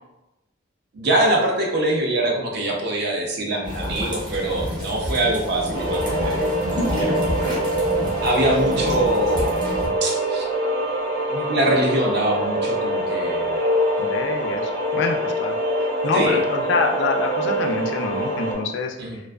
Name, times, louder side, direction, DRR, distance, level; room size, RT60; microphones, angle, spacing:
voice 1, 0.9-6.5 7.0-7.6 8.2-9.6 10.0-10.4 11.3-13.9 16.1-16.4 19.0-19.2, right 1 dB, 55° right, 0 dB, 0.5 m, -24 dB
sound 1, 3.6-9.9, equal, 20° right, 0.7 m, -28 dB
sound 2, 5.7-18.5, equal, 85° right, 1.0 m, -24 dB
voice 2, 14.0-14.6 14.9-15.6 16.0-19.0, left 4 dB, 65° left, 2 dB, 0.3 m, -25 dB
2.4 x 2.3 x 2.2 m, 0.96 s
head